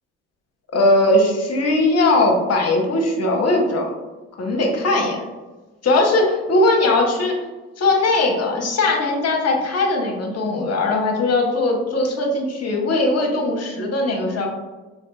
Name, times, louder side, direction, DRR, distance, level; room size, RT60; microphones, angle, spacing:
voice 1, 0.7-3.9 4.4-5.2 5.8-7.3 7.8-14.5, left 2 dB, 40° left, 1 dB, 0.9 m, -19 dB
4.2 x 2.6 x 2.3 m, 1.2 s
supercardioid pair, 65°, 37 cm